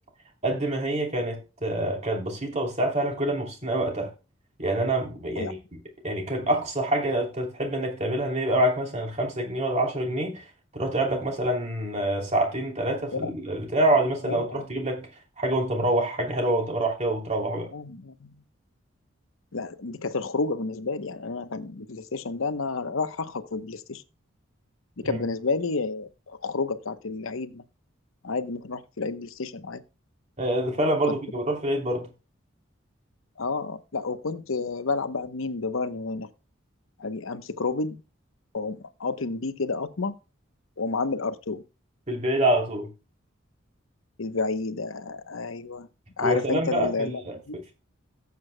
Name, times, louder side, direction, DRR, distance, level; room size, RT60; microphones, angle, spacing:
voice 1, 0.4-4.1 4.6-5.6 6.0-15.1 15.4-17.7 25.0-25.2 30.4-32.1 42.1-42.9 46.2-47.4, right 1 dB, 35° right, 3.0 m, -26 dB
voice 2, 14.3-14.6 17.7-18.3 19.5-24.0 25.0-27.6 28.2-29.8 31.0-31.2 33.4-36.3 37.0-38.0 38.5-40.2 40.8-41.6 44.2-45.9 46.2-47.6, left 4 dB, 85° left, 0.9 m, -30 dB
17.0 x 8.3 x 2.2 m
head